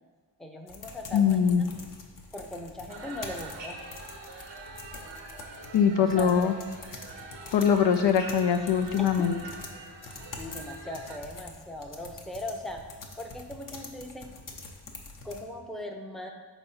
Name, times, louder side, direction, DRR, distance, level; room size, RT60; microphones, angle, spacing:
voice 1, 0.4-1.7 2.3-3.8 6.0-6.6 9.0-9.2 10.4-12.8 13.2-14.3 15.2-16.3, left 1 dB, ahead, 2 dB, 0.6 m, -39 dB
sound 1, 0.7-15.4, left 3 dB, 45° left, 0.9 m, -46 dB
voice 2, 1.1-1.6 5.7-6.5 7.5-9.3, left 7 dB, 70° left, 7 dB, 0.5 m, -22 dB
sound 2, 2.9-11.2, right 3 dB, 75° right, 0.8 m, -44 dB
4.4 x 4.0 x 5.6 m, 1.5 s
cardioid pair, 65°, 44 cm